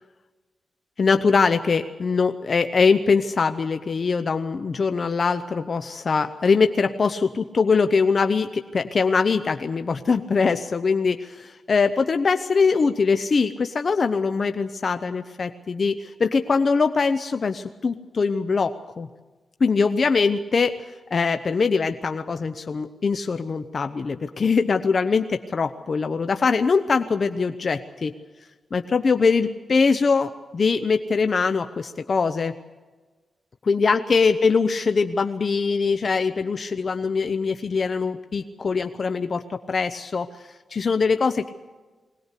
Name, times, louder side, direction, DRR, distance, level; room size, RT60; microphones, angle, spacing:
voice 1, 1.0-19.1 19.6-20.8 21.1-28.1 28.7-32.5 33.7-41.5, left 5 dB, 50° left, 9 dB, 0.8 m, -22 dB
21.0 x 18.5 x 8.3 m, 1.3 s
cardioid pair, 95°, 0 cm